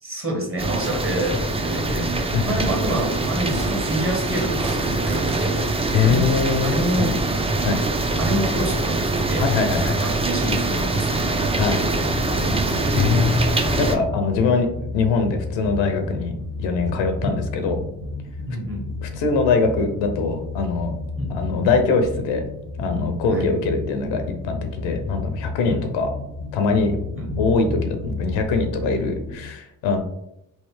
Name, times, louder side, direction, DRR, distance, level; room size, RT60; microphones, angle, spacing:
voice 1, 0.0-6.2 6.6-7.1 8.2-9.5 9.8-11.3 12.9-13.2 17.2-17.3 18.5-18.8 21.2-21.3 23.3-23.5 25.7-25.8 27.1-27.3, right 1 dB, 30° right, 1 dB, 1.3 m, -28 dB
sound 1, 0.6-14.0, right 2 dB, 15° right, 0.4 m, -24 dB
sound 2, 2.7-7.0, right 2 dB, 55° right, 1.3 m, -36 dB
voice 2, 5.9-7.2 7.6-7.8 9.4-10.1 11.3-11.8 12.9-14.7 14.9-16.3 16.6-17.8 19.0-20.9 21.3-22.4 22.8-26.1 26.5-26.9 27.4-30.0, left 4 dB, 85° left, 6 dB, 0.7 m, -22 dB
sound 3, 11.8-29.5, left 3 dB, 80° right, 1.3 m, -32 dB
3.2 x 2.7 x 3.1 m, 0.80 s
hypercardioid pair, 45°, 44 cm